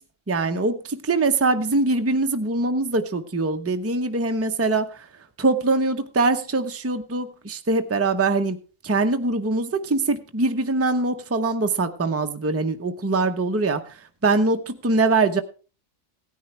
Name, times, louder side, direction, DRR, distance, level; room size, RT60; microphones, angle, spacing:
voice 1, 0.3-5.0 5.4-8.6 8.8-13.8 14.2-15.4, right 3 dB, 15° right, 7 dB, 0.6 m, -23 dB
17.0 x 10.0 x 3.3 m, 0.35 s
omnidirectional pair, 1.4 m